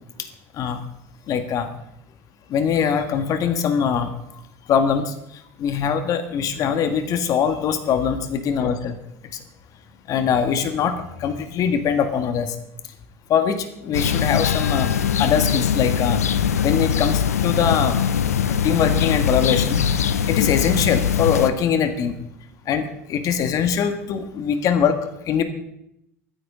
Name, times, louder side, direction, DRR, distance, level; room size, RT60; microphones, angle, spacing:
voice 1, 1.3-1.7 2.5-4.1 4.7-9.0 10.1-12.6 13.3-14.9 15.2-16.3 16.6-18.0 18.5-22.1 22.7-25.0 25.3-25.4, left 7 dB, 45° left, 8 dB, 1.7 m, -22 dB
sound 1, 13.9-21.5, left 7 dB, 85° left, 0.7 m, -21 dB
24.0 x 10.0 x 3.8 m, 0.79 s
hypercardioid pair, 75°, 8 cm